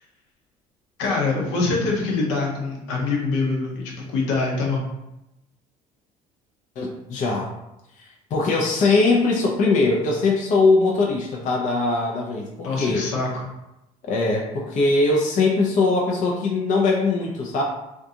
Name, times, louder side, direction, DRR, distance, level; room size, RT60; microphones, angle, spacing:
voice 1, 1.0-4.9 12.6-13.4, left 3 dB, 70° left, -2 dB, 0.8 m, -24 dB
voice 2, 6.8-7.5 8.3-13.1 14.0-17.6, left 3 dB, 40° left, -1 dB, 0.5 m, -21 dB
2.4 x 2.3 x 2.7 m, 0.90 s
hypercardioid pair, 65°, 19 cm